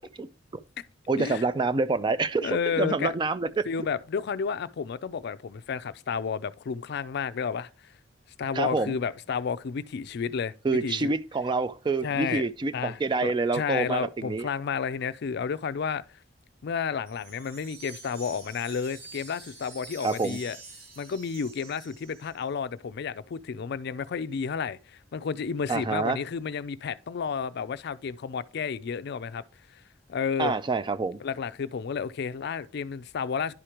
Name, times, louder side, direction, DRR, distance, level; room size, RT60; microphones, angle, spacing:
voice 1, 1.1-3.6 8.5-9.0 10.6-14.5 20.0-20.4 25.7-26.2 30.4-31.2, right 3 dB, 25° right, 0.3 m, -27 dB
voice 2, 2.4-3.1 3.7-7.7 8.4-10.5 10.8-11.1 12.0-12.4 12.7-16.0 16.6-20.6 21.0-24.8 25.1-29.4 30.1-30.6 31.2-33.5, left 6 dB, 60° left, 0.4 m, -31 dB
Wind chime, 17.1-22.4, right 3 dB, 90° right, 3.8 m, -47 dB
11.0 x 4.9 x 2.9 m
head